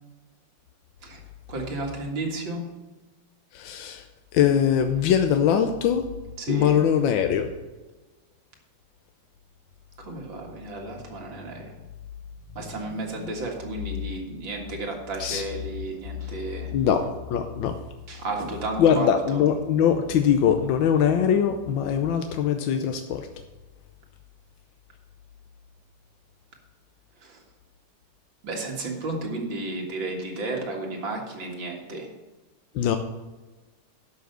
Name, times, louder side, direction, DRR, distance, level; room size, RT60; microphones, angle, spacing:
voice 1, 1.5-2.7 6.4-6.8 10.0-11.8 12.6-16.7 18.1-19.4 27.2-27.4 28.4-32.1, right 2 dB, 90° right, 0 dB, 2.6 m, -33 dB
voice 2, 3.5-4.0 4.3-6.0 6.5-7.5 15.2-15.4 16.7-17.0 17.3-17.7 18.8-23.3 32.7-33.0, left 8 dB, 85° left, 6 dB, 1.5 m, -22 dB
11.5 x 5.6 x 6.6 m, 1.2 s
omnidirectional pair, 2.0 m